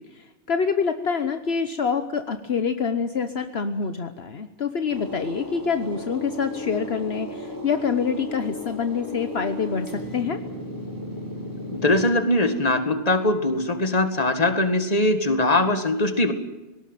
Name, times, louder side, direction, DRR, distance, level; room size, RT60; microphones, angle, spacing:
voice 1, 0.5-10.4, left 6 dB, 65° left, 9 dB, 1.3 m, -26 dB
sound 1, 4.9-12.1, equal, 15° left, 3.9 m, -35 dB
voice 2, 11.7-16.3, left 2 dB, 35° left, 9 dB, 2.0 m, -21 dB
19.0 x 18.0 x 9.2 m, 1.0 s
omnidirectional pair, 1.2 m